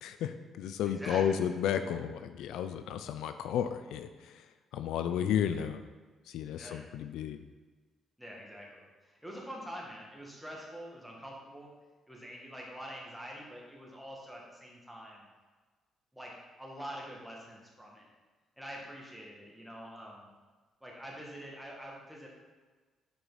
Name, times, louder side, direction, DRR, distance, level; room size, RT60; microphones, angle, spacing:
voice 1, 0.0-4.5 4.7-5.8 6.3-7.4, left 9 dB, 85° left, 9 dB, 0.3 m, -33 dB
voice 2, 0.8-1.4 6.5-6.8 8.2-11.7 12.1-15.2 16.1-18.1 18.6-20.3 20.8-22.3, equal, ahead, -2 dB, 1.8 m, -45 dB
7.7 x 4.9 x 4.0 m, 1.4 s
cardioid pair, 90°, 0 cm